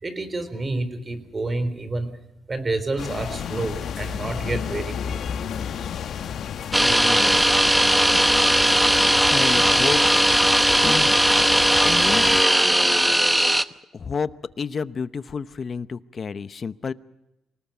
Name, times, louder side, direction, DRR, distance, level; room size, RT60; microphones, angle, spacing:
voice 1, 0.0-2.1 2.5-5.3, right 2 dB, 30° right, 11 dB, 3.9 m, -29 dB
sound 1, 3.0-12.4, left 8 dB, 65° left, 1.1 m, -32 dB
sound 2, 6.7-13.6, right 1 dB, 5° right, 0.9 m, -18 dB
voice 2, 6.8-7.6 9.3-10.0 10.8-11.2 11.8-12.4 13.9-14.3 14.6-16.9, left 5 dB, 40° left, 14 dB, 0.9 m, -30 dB
25.5 x 19.0 x 7.2 m, 0.93 s
cardioid pair, 90°, 0 cm